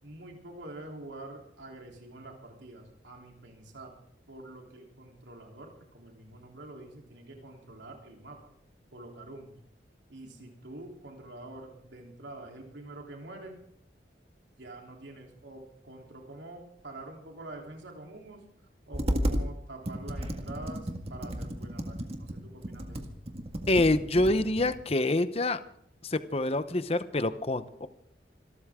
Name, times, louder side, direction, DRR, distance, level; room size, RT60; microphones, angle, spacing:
voice 1, 0.0-3.9 4.3-8.4 8.9-9.5 10.1-13.6 14.6-18.4 18.9-23.4, right 2 dB, 80° right, 1 dB, 3.4 m, -46 dB
Computer keyboard, 18.9-19.5 19.9-24.8, equal, 35° right, 1.8 m, -33 dB
voice 2, 23.7-25.6 26.0-27.9, left 2 dB, 35° left, 12 dB, 0.8 m, -26 dB
26.5 x 13.0 x 3.7 m, 0.69 s
head